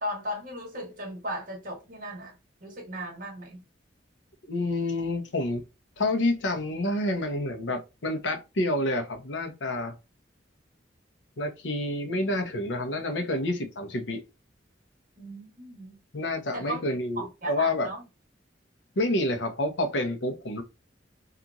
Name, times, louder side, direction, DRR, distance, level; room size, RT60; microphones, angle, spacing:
voice 1, 0.0-2.4 2.6-3.6 15.2-16.0 16.5-16.8 17.2-18.0, equal, 45° right, 1.3 m, -36 dB
voice 2, 4.5-5.6 6.0-9.9 11.4-14.2 16.1-17.9 19.0-20.6, left 1 dB, 70° left, 0.7 m, -28 dB
2.9 x 2.4 x 2.4 m
head